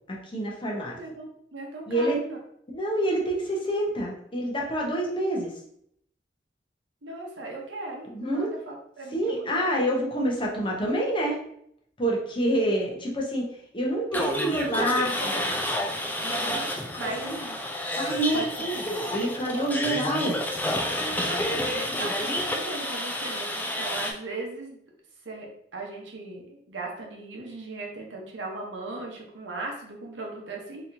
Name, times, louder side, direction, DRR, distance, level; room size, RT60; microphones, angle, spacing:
voice 1, 0.1-1.0 1.9-2.2 2.7-5.5 8.1-8.5 9.1-11.4 12.0-13.5 13.7-15.1 17.0-17.4 18.0-20.4, right 1 dB, 30° left, -2 dB, 0.8 m, -27 dB
voice 2, 0.7-2.4 7.0-9.8 14.1-14.3 14.6-15.4 16.2-17.6 18.3-18.7 21.2-24.8 25.2-30.9, right 2 dB, 90° right, 0 dB, 0.9 m, -38 dB
sound 1, 14.1-24.1, left 1 dB, 10° left, 0.4 m, -30 dB
3.9 x 2.9 x 2.7 m, 0.71 s
head